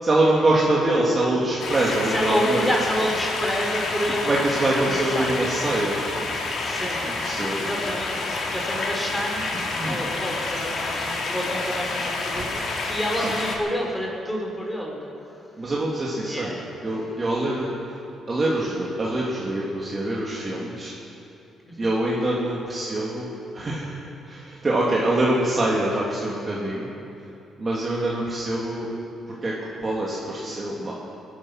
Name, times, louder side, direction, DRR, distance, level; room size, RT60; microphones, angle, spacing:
voice 1, 0.0-2.7 4.2-6.0 7.2-7.6 9.8-10.0 10.9-11.1 13.2-13.4 15.6-16.5 16.8-17.7 18.3-20.9 21.8-23.3 23.5-24.0 24.3-26.9 27.6-28.9 29.3-30.9, right 1 dB, 30° right, -5 dB, 2.9 m, -24 dB
sound 1, 1.6-13.6, left 3 dB, 60° left, 3.4 m, -28 dB
voice 2, 1.8-4.3 4.7-5.8 6.6-7.2 7.6-9.5 9.8-15.0 16.2-16.7 21.7-21.9, equal, 5° left, -1 dB, 4.5 m, -29 dB
20.0 x 11.0 x 6.5 m, 2.8 s
cardioid pair, 90°, 0 cm